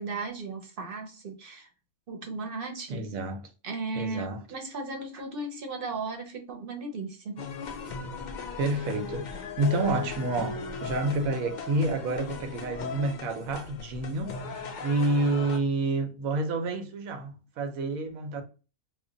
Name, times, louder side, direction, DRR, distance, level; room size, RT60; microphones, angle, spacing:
voice 1, 0.0-1.7 2.1-3.1 3.6-7.4, right 3 dB, 50° right, 0.8 m, -36 dB
voice 2, 2.9-3.4 4.0-4.4 8.6-14.4 14.8-18.4, right 2 dB, 90° right, 1.2 m, -29 dB
sound 1, 7.4-15.6, left 4 dB, 75° left, 0.4 m, -38 dB
3.1 x 2.2 x 3.8 m
omnidirectional pair, 1.4 m